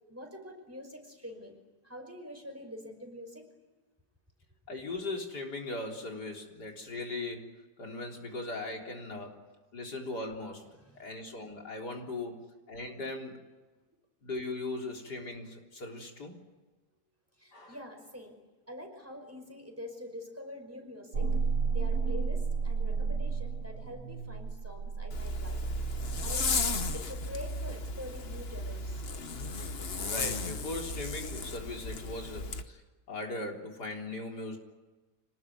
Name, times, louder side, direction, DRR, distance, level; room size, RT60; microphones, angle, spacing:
voice 1, 0.1-1.6 1.8-3.5 10.9-11.0 17.4-18.4 18.7-21.3 21.7-25.6 25.9-26.5 26.9-29.1, left 1 dB, 10° right, 3 dB, 5.3 m, -45 dB
voice 2, 4.7-9.4 9.7-10.7 11.0-13.4 14.2-16.3 17.5-17.8 30.0-32.8 33.1-34.6, left 2 dB, 90° left, 1 dB, 4.5 m, -39 dB
sound 1, 21.1-27.0, right 5 dB, 75° right, 2.5 m, -32 dB
Zipper (clothing), 25.1-32.6, left 3 dB, 45° left, 1.2 m, -35 dB
26.5 x 19.5 x 9.5 m, 1.2 s
omnidirectional pair, 1.7 m